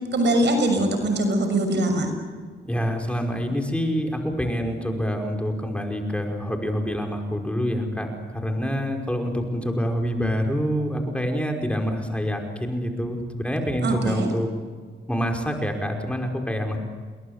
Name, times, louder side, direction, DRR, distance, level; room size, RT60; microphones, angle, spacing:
voice 1, 0.1-2.1 13.8-14.3, right 1 dB, 65° right, 6 dB, 6.4 m, -22 dB
voice 2, 2.7-14.5 15.1-16.8, equal, 5° left, 3 dB, 5.3 m, -26 dB
29.5 x 21.0 x 8.2 m, 1.5 s
supercardioid pair, 60°, 20 cm